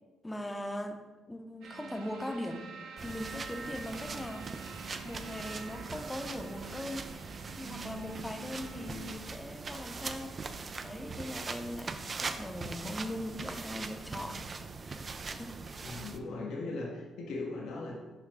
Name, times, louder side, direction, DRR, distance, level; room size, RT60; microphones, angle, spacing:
voice 1, 0.2-1.0 1.3-2.7 3.0-4.5 5.0-7.1 7.5-10.3 10.8-14.4 14.8-15.6, left 1 dB, 15° left, 6 dB, 0.8 m, -40 dB
sound 1, 1.6-9.2, right 5 dB, 80° right, 0.7 m, -47 dB
sound 2, 3.0-16.2, right 4 dB, 45° right, 0.5 m, -41 dB
voice 2, 15.8-17.9, left 3 dB, 75° left, -2 dB, 1.0 m, -38 dB
5.8 x 4.9 x 3.5 m, 1.2 s
supercardioid pair, 55°, 0 cm